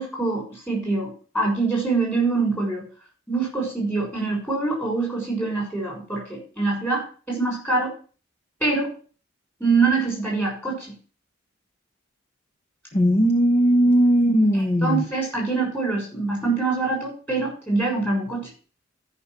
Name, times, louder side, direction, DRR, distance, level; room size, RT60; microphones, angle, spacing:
voice 1, 0.0-2.8 3.3-7.9 8.6-8.9 9.6-11.0 14.5-18.5, right 3 dB, 10° left, -1 dB, 6.4 m, -24 dB
voice 2, 12.9-15.0, equal, 35° left, 4 dB, 1.1 m, -18 dB
13.5 x 6.1 x 6.0 m, 0.38 s
head